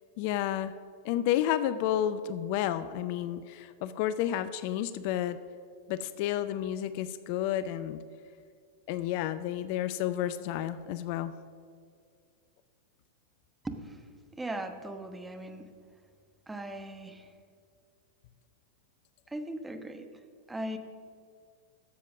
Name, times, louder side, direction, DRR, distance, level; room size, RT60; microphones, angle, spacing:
voice 1, 0.2-0.7 1.0-5.4 5.9-8.0 8.9-11.4, left 11 dB, 50° left, 13 dB, 0.5 m, -31 dB
voice 2, 13.6-14.0 14.3-15.7 16.5-17.3 19.3-20.1 20.5-20.8, right 1 dB, 10° right, 6 dB, 1.1 m, -38 dB
13.0 x 7.4 x 6.3 m, 2.2 s
figure-of-eight pair, 95°, 0 cm